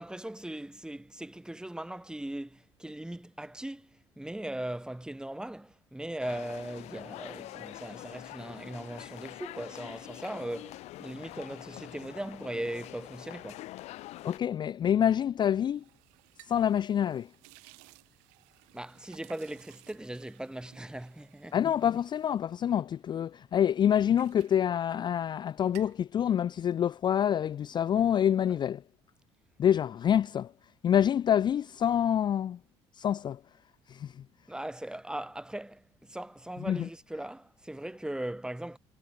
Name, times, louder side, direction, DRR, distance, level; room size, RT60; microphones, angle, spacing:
voice 1, 0.0-13.7 18.7-21.6 34.5-38.8, right 1 dB, 5° right, 2.0 m, -39 dB
sound 1, 6.2-14.4, left 17 dB, 70° left, 3.0 m, -45 dB
voice 2, 14.2-15.8 16.4-17.3 21.5-28.8 29.6-30.5 30.8-32.6 33.0-33.4 33.9-34.2 36.6-36.9, left 9 dB, 40° left, 0.4 m, -27 dB
sound 2, 15.6-23.3 23.7-25.4 25.6-26.1, right 34 dB, 85° right, 4.4 m, -58 dB
supercardioid pair, 75°, 12 cm